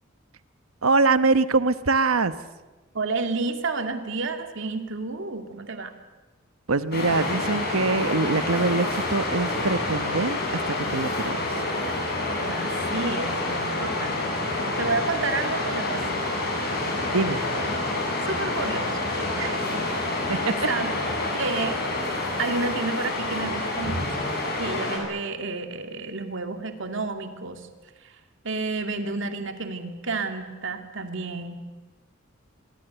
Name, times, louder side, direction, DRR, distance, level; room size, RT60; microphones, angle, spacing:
voice 1, 0.8-2.3 6.7-10.4 10.7-11.5 17.1-17.4 20.2-20.5, right 3 dB, 90° right, 13 dB, 1.1 m, -23 dB
voice 2, 2.9-5.9 12.4-16.3 18.2-19.0 19.4-20.2 20.7-20.9 21.3-21.8 22.4-24.2 24.6-27.7 28.0-28.1 28.4-31.6, right 3 dB, 60° right, 6 dB, 2.4 m, -31 dB
Waves surf, 6.9-25.0, left 2 dB, 50° left, 7.9 m, -28 dB
25.5 x 22.5 x 8.1 m, 1.2 s
head